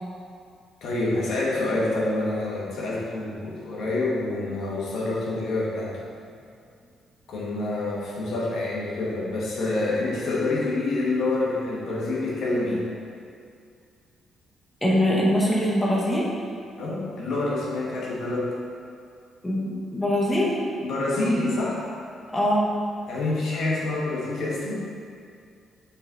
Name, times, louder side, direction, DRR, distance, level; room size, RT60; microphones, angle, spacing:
voice 1, 0.8-6.0 7.3-12.8 16.8-18.6 20.8-21.8 23.1-24.8, left 2 dB, 70° left, -5 dB, 1.5 m, -27 dB
voice 2, 14.8-16.2 19.4-20.6 22.3-22.6, equal, 15° left, -5 dB, 1.1 m, -22 dB
6.9 x 4.1 x 3.9 m, 2.3 s
cardioid pair, 90°, 0 cm